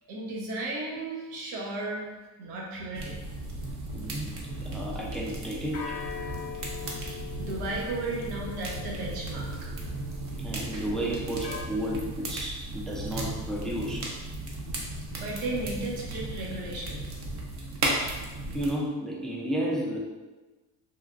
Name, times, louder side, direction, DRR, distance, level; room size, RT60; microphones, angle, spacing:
voice 1, 0.0-3.2 7.1-9.7 14.7-17.0, right 2 dB, 80° right, -3 dB, 0.9 m, -35 dB
sound 1, 2.9-18.7, right 2 dB, 50° right, 0.7 m, -35 dB
voice 2, 3.9-4.3 4.7-6.0 10.4-14.1 18.5-20.0, equal, ahead, -4 dB, 0.4 m, -32 dB
sound 2, 4.5-5.0 5.7-10.6 11.4-11.6, left 8 dB, 55° left, 0.5 m, -42 dB
3.3 x 2.2 x 2.5 m, 1.2 s
supercardioid pair, 100°, 36 cm